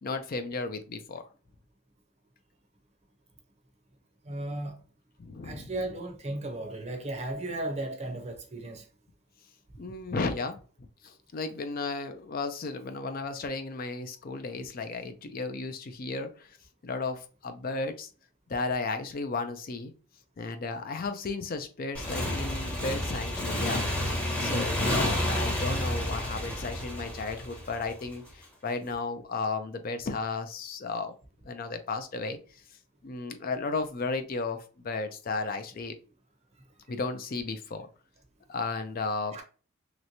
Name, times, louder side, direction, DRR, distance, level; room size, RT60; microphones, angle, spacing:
voice 1, 0.0-1.3 5.2-5.7 9.8-10.6 11.0-16.6 16.8-18.1 18.5-19.9 20.4-31.1 31.4-32.6 33.0-35.9 36.9-37.9 38.5-39.4, left 3 dB, 40° left, 0.4 m, -34 dB
voice 2, 4.2-4.8 5.4-8.9 39.3-39.4, right 1 dB, 30° right, 0.6 m, -35 dB
Motorcycle / Engine, 21.9-28.3, left 1 dB, 5° left, 0.7 m, -30 dB
3.2 x 3.0 x 2.6 m
head